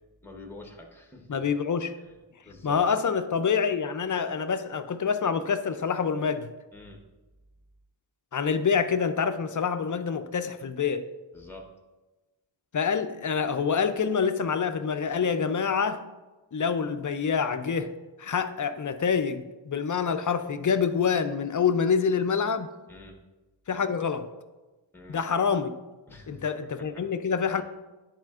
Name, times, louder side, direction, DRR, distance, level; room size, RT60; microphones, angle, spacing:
voice 1, 0.2-1.3 2.0-2.1 2.4-2.8 6.7-7.0 11.3-11.7 22.9-23.2 24.9-25.2 26.1-26.4 26.8-27.0 27.4-27.6, left 2 dB, 5° left, 1.0 m, -46 dB
voice 2, 1.3-1.9 2.6-6.5 8.3-11.1 12.7-16.0 16.5-17.9 18.2-22.7 23.7-24.3 25.1-25.7 26.3-27.6, left 6 dB, 40° left, 0.4 m, -26 dB
10.0 x 4.3 x 2.4 m
wide cardioid pair, 75°, 47 cm